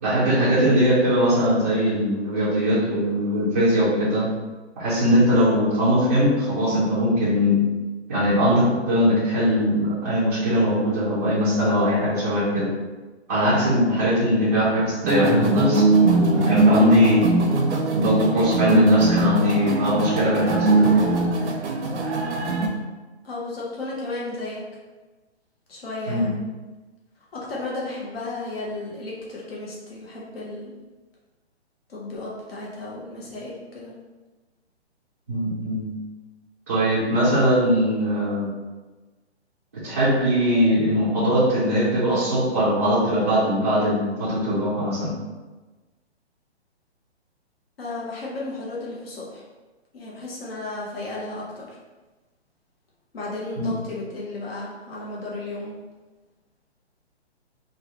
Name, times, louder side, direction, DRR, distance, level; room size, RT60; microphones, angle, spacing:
voice 1, 0.0-4.3 4.8-7.6 8.1-12.7 13.3-17.3 17.9-21.0 26.1-26.3 35.3-35.9 36.7-38.5 39.8-45.1 53.6-53.7, equal, 15° right, -11 dB, 0.4 m, -21 dB
sound 1, 15.0-22.7, right 2 dB, 80° right, 0.7 m, -20 dB
voice 2, 23.2-24.6 25.7-26.4 27.3-30.7 31.9-33.9 47.8-49.4 49.9-51.8 53.1-55.8, left 2 dB, 60° left, -5 dB, 0.9 m, -34 dB
3.1 x 2.2 x 2.8 m, 1.2 s
hypercardioid pair, 165°, 34 cm